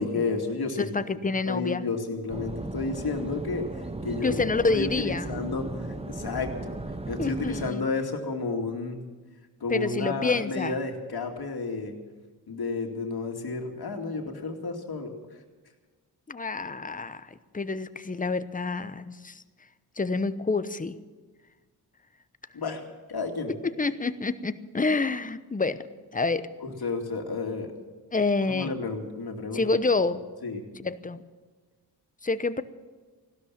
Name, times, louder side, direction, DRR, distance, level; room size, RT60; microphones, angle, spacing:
voice 1, 0.0-0.9 1.5-3.7 4.0-5.7 6.1-6.7 7.1-9.0 9.6-11.9 12.5-15.1 22.5-22.8 23.1-23.5 26.6-27.7 28.5-29.7 30.4-30.6, left 3 dB, 60° left, 3 dB, 2.4 m, -31 dB
voice 2, 0.8-1.8 4.2-5.3 7.2-7.9 9.7-10.8 16.3-19.4 20.0-20.9 23.5-25.8 26.1-26.5 28.1-28.7 29.5-30.2 30.8-31.2 32.2-32.6, left 3 dB, 20° left, 13 dB, 0.9 m, -28 dB
sound 1, 2.3-7.7, right 2 dB, 15° right, 0.9 m, -36 dB
16.0 x 12.5 x 7.2 m, 1.4 s
cardioid pair, 55°, 42 cm